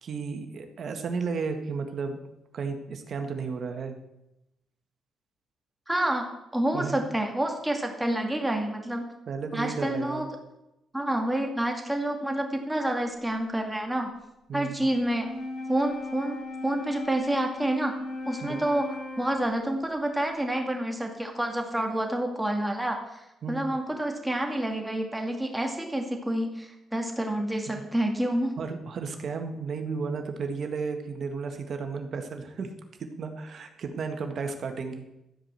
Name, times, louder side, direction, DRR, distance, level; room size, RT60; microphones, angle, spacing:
voice 1, 0.0-2.2 2.5-3.9 6.7-7.0 9.3-10.3 14.5-14.9 18.4-18.6 23.4-23.7 28.6-32.7 33.0-35.0, right 5 dB, 55° right, 5 dB, 1.7 m, -33 dB
voice 2, 5.9-6.2 6.5-9.1 9.5-10.3 10.9-14.1 14.5-15.3 15.7-17.9 18.3-18.9 19.2-28.5, right 1 dB, 5° right, 2 dB, 2.4 m, -28 dB
Wind instrument woodwind instrument, 15.0-19.8, left 3 dB, 75° left, 3.4 m, -38 dB
13.5 x 5.1 x 7.7 m, 0.89 s
cardioid pair, 90°, 0 cm